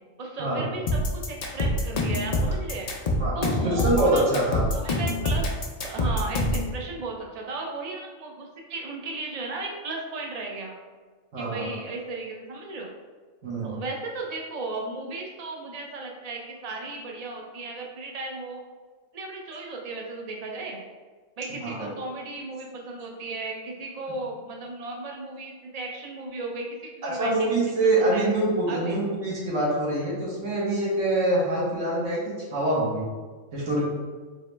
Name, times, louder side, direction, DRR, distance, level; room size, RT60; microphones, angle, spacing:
voice 1, 0.2-2.9 3.3-5.5 5.8-10.7 11.4-12.9 13.6-18.6 19.1-20.8 21.4-28.3 28.7-29.0, right 3 dB, 50° right, 0 dB, 0.5 m, -35 dB
sound 1, 0.9-6.7, left 1 dB, 70° left, 0.3 m, -25 dB
voice 2, 3.6-4.6 11.3-11.7 13.4-13.8 21.6-21.8 27.0-32.2 32.5-33.1 33.5-33.8, right 1 dB, 75° right, -5 dB, 1.5 m, -25 dB
3.7 x 2.9 x 3.2 m, 1.4 s
omnidirectional pair, 1.3 m